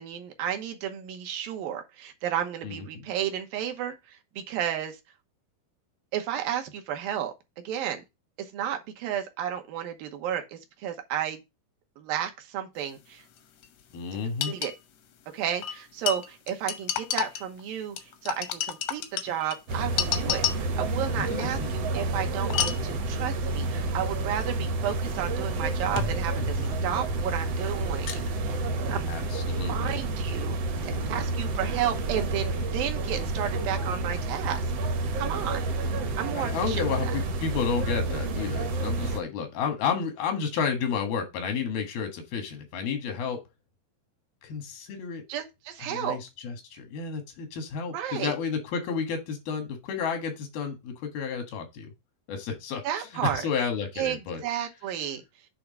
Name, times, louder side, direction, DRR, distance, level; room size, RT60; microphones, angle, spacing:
voice 1, 0.0-5.0 6.1-7.3 7.6-8.0 8.4-11.4 12.0-13.2 14.5-14.7 15.3-18.0 18.2-20.4 20.8-28.3 28.9-29.1 29.7-30.6 30.8-34.6 35.2-35.6 36.2-37.1 45.3-46.2 47.9-48.3 52.8-53.5 54.0-55.2, right 10 dB, 75° right, 2.8 m, -32 dB
voice 2, 2.6-3.0 13.9-14.5 21.2-21.7 29.1-29.9 36.3-43.4 44.4-45.2 45.9-51.9 52.3-54.4, left 6 dB, 90° left, 3.5 m, -31 dB
sound 1, 13.4-13.5 13.6-13.7 14.4-14.8 15.6-17.6 18.0-20.8 22.4-22.9 24.4-24.5 25.9-27.2 27.5-28.4, left 9 dB, 70° left, 1.5 m, -31 dB
sound 2, 19.7-39.2, right 2 dB, 60° right, 1.8 m, -29 dB
8.4 x 3.5 x 5.3 m
omnidirectional pair, 4.2 m